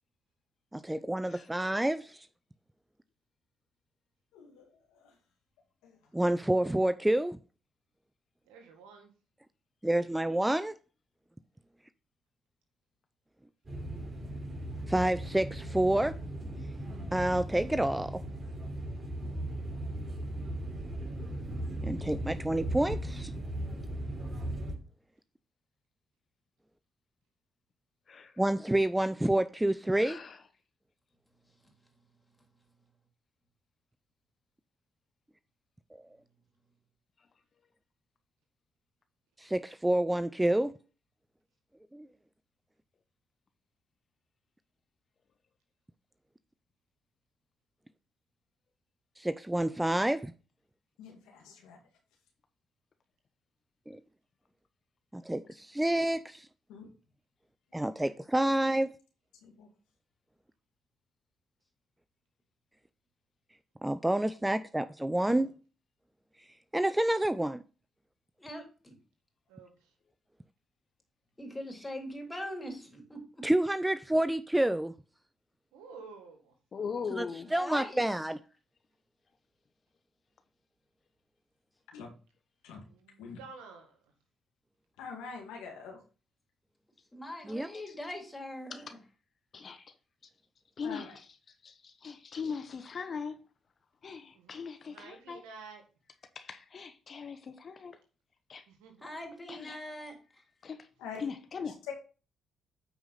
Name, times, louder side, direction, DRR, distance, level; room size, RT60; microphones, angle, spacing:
voice 1, 0.7-2.3 6.1-7.4 9.8-10.7 14.9-16.1 17.1-18.2 21.8-23.3 28.4-30.2 39.4-40.7 41.9-42.1 49.2-50.3 53.9-54.0 55.1-56.5 57.7-58.9 63.8-65.5 66.7-67.6 73.4-74.9 77.2-77.3 77.5-78.4 87.4-87.7, right 1 dB, 10° right, 0.5 m, -28 dB
voice 2, 4.3-5.1 5.8-6.0 51.0-51.8 56.7-56.9 58.0-58.1 59.4-59.7 65.3-65.4 81.9-82.1 82.6-82.8 83.2-83.4 85.0-86.0 90.8-91.2 101.0-101.2, left 5 dB, 85° left, 2.1 m, -46 dB
voice 3, 8.4-9.1 69.5-69.9 75.7-76.5 82.8-84.0 94.3-94.5 94.9-95.8 98.7-99.1, right 5 dB, 90° right, 1.7 m, -51 dB
sound 1, 13.7-24.8, right 1 dB, 35° right, 3.8 m, -37 dB
voice 4, 28.1-28.4 30.0-30.4 76.7-77.5 87.9-88.0 88.7-88.8 89.5-89.8 90.8-91.3 91.6-93.4 94.0-95.4 96.3-98.0 98.5-98.7 99.5-99.8 100.6-100.9 101.2-101.9, left 6 dB, 50° left, 0.9 m, -40 dB
voice 5, 68.4-68.9 71.4-73.4 77.6-78.3 87.1-89.0 99.0-100.2, left 1 dB, 15° left, 3.2 m, -41 dB
9.1 x 4.8 x 4.0 m
supercardioid pair, 55°, 0 cm